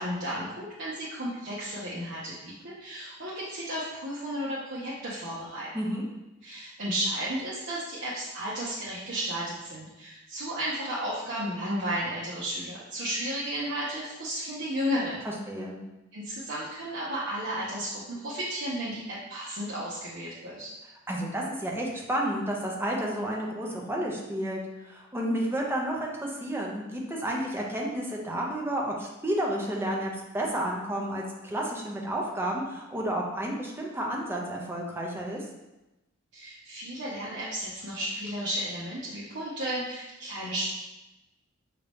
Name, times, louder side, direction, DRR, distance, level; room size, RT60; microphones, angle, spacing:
voice 1, 0.0-5.7 6.4-15.2 16.1-20.7 36.3-40.6, equal, 60° right, -9 dB, 0.9 m, -33 dB
voice 2, 5.7-6.1 15.5-15.8 21.1-35.4, right 1 dB, 10° right, -2 dB, 0.7 m, -31 dB
5.0 x 2.9 x 3.4 m, 0.99 s
head